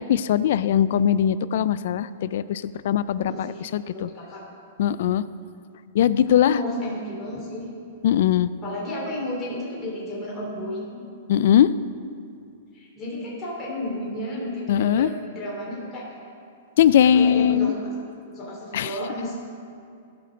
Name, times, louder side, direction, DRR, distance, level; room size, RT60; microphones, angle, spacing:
voice 1, 0.0-4.1 4.8-5.2 5.9-6.6 8.0-8.5 11.3-11.7 14.7-15.1 16.8-17.7 18.7-19.0, left 10 dB, 65° left, 16 dB, 0.3 m, -20 dB
voice 2, 3.2-4.4 6.4-7.7 8.6-11.0 12.7-16.1 17.1-17.9 18.3-19.3, left 1 dB, 20° left, -6 dB, 3.0 m, -32 dB
14.5 x 5.8 x 5.1 m, 2.4 s
hypercardioid pair, 125°, 0 cm